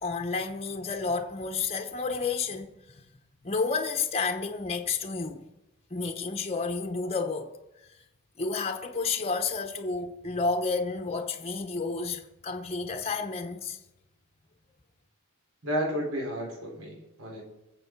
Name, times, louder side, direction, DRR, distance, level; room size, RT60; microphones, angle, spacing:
voice 1, 0.0-2.7 3.4-5.4 5.9-7.5 8.4-13.8, left 4 dB, 30° left, 1.0 m, -30 dB
voice 2, 15.6-17.4, equal, 70° right, 4.2 m, -32 dB
23.0 x 7.6 x 4.7 m
head